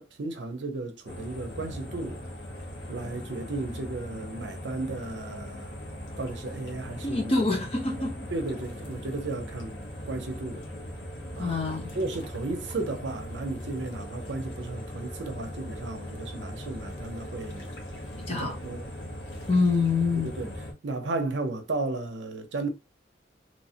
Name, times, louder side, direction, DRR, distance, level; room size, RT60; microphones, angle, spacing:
voice 1, 0.0-2.2 2.9-5.8 6.2-7.7 8.0-9.7 10.1-10.6 11.4-11.6 11.9-17.7 18.3-18.9 20.2-22.7, right 2 dB, 80° right, 0.6 m, -34 dB
sound 1, 1.1-20.7, equal, 85° left, 0.9 m, -39 dB
voice 2, 7.0-8.1 11.4-11.9 18.3-18.6 19.5-20.3, left 3 dB, 30° left, 0.7 m, -25 dB
3.0 x 2.1 x 2.7 m
head